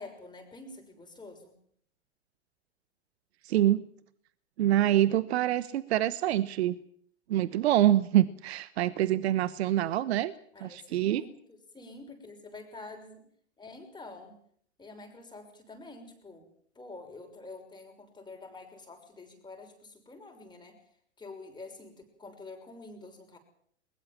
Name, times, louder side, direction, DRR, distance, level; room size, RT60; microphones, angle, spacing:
voice 1, 0.0-1.5 10.5-13.3 13.6-14.4 14.8-16.5 16.7-20.8 21.2-23.4, left 3 dB, 10° left, 4 dB, 6.2 m, -47 dB
voice 2, 3.4-3.8 4.6-6.8 7.3-10.3 10.6-11.2, right 13 dB, 60° right, 17 dB, 1.1 m, -25 dB
21.5 x 21.0 x 7.6 m, 0.63 s
figure-of-eight pair, 100°, 36 cm